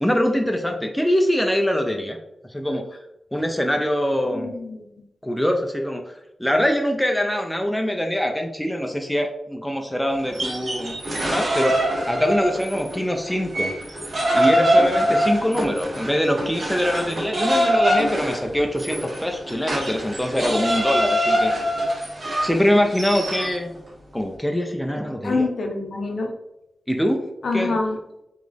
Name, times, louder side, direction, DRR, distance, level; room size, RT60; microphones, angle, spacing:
voice 1, 0.0-2.2 2.5-2.9 3.3-4.5 5.2-6.0 6.4-13.7 14.3-21.5 22.4-23.7 24.1-25.5 26.9-27.2 27.5-27.8, equal, 5° left, 3 dB, 0.4 m, -23 dB
voice 2, 4.3-4.8 25.2-26.3 27.4-28.0, left 3 dB, 60° left, 3 dB, 0.7 m, -25 dB
sound 1, 10.2-13.0 13.3-23.6, equal, 45° right, 1.0 m, -23 dB
3.9 x 3.1 x 3.4 m, 0.87 s
wide cardioid pair, 145°, 0 cm